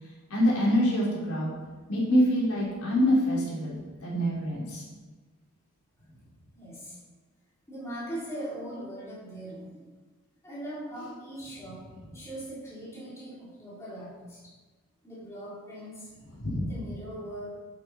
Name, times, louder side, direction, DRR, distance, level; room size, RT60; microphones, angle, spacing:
voice 1, 0.3-1.5 1.9-4.8 16.4-16.7, equal, 80° left, -5 dB, 3.7 m, -25 dB
voice 2, 6.6-7.0 7.7-9.9 10.4-11.8 12.1-14.4 15.0-16.1 16.7-17.6, right 1 dB, 15° left, -8 dB, 3.8 m, -40 dB
11.0 x 8.0 x 4.3 m, 1.3 s
head